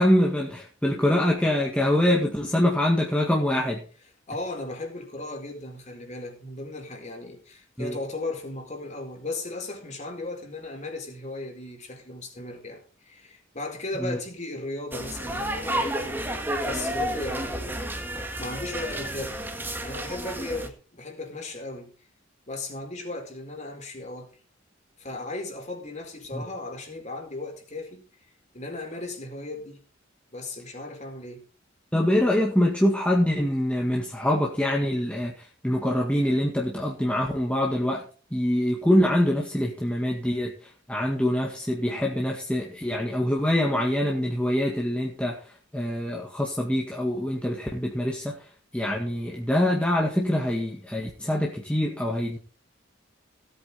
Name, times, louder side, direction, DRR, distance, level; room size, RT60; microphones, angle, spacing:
voice 1, 0.0-3.8 7.8-7.9 14.0-14.2 26.3-26.5 31.9-38.0 38.3-40.5 40.9-45.4 45.7-48.4 48.7-52.4, left 1 dB, 5° left, 1.9 m, -24 dB
voice 2, 4.3-16.3 16.6-19.4 19.8-21.9 22.5-24.3 25.0-28.1 28.5-29.8 30.3-31.4, left 2 dB, 35° left, 4.4 m, -36 dB
sound 1, 14.9-20.7, right 1 dB, 10° right, 1.8 m, -31 dB
17.5 x 8.4 x 4.2 m
head